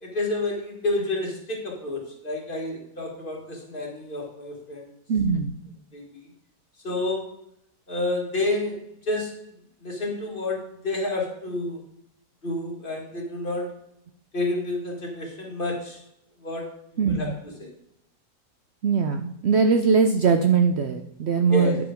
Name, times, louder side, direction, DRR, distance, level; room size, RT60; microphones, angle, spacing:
voice 1, 0.0-4.9 5.9-6.2 6.8-7.3 7.9-9.3 9.8-11.8 12.4-13.7 14.3-16.0 16.4-16.7 17.1-17.7 21.5-21.8, left 2 dB, 30° left, 0 dB, 1.9 m, -29 dB
voice 2, 5.1-5.5 17.0-17.3 18.8-21.8, right 5 dB, 90° right, 6 dB, 0.5 m, -21 dB
9.4 x 5.0 x 5.1 m, 0.77 s
omnidirectional pair, 1.8 m